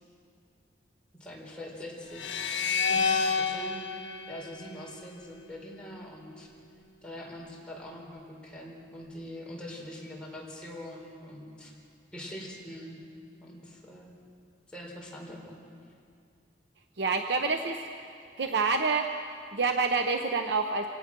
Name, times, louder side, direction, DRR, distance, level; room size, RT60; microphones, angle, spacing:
voice 1, 1.1-2.5 2.9-3.8 4.3-6.5 7.0-11.7 12.1-13.0 13.4-14.1 14.7-15.6, left 1 dB, 5° left, -3 dB, 4.3 m, -43 dB
sound 1, 2.1-5.4, left 5 dB, 80° left, 1.7 m, -30 dB
voice 2, 17.0-17.8 18.4-19.1 19.5-20.9, right 4 dB, 65° right, 5 dB, 0.9 m, -27 dB
25.5 x 17.5 x 6.1 m, 2.4 s
head